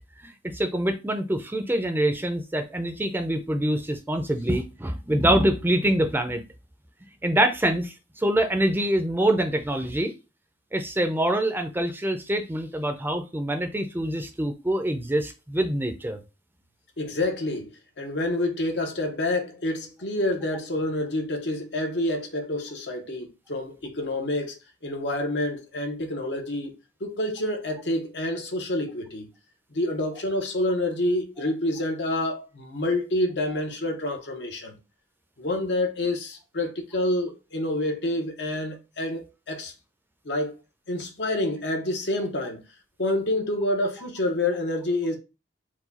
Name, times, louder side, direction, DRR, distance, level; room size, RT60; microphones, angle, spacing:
voice 1, 0.2-6.4 7.2-10.1 10.7-16.2, right 1 dB, 10° right, 0.5 m, -25 dB
voice 2, 17.0-29.3 29.7-34.8 35.4-39.7 40.2-40.5 40.9-42.6 43.0-45.2, left 1 dB, 70° left, 1.0 m, -28 dB
4.6 x 2.3 x 4.0 m
head